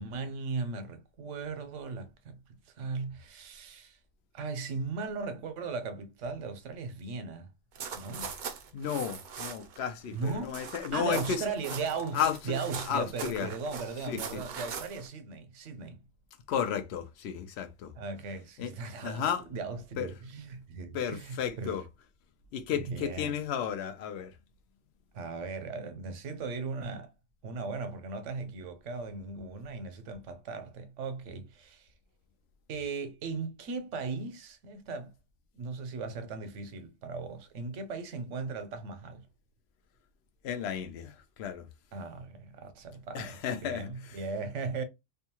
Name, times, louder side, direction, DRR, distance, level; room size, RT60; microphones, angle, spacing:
voice 1, 0.0-2.4 2.7-4.0 4.3-7.5 7.9-8.3 10.1-10.6 10.9-16.0 18.0-21.8 22.7-23.4 25.1-27.1 27.4-31.9 32.7-35.1 35.5-39.3 41.9-44.8, right 4 dB, 75° right, 1.0 m, -37 dB
sound 1, 7.8-9.8 10.0-15.1, right 6 dB, 60° right, 0.5 m, -41 dB
voice 2, 8.7-11.4 12.1-12.6 12.9-13.5 14.1-14.4 16.5-17.9 18.6-18.7 19.0-19.4 20.0-20.1 20.9-21.8 22.5-24.3 40.4-41.7 43.1-44.2, left 8 dB, 65° left, 0.8 m, -33 dB
2.6 x 2.3 x 2.8 m
omnidirectional pair, 1.3 m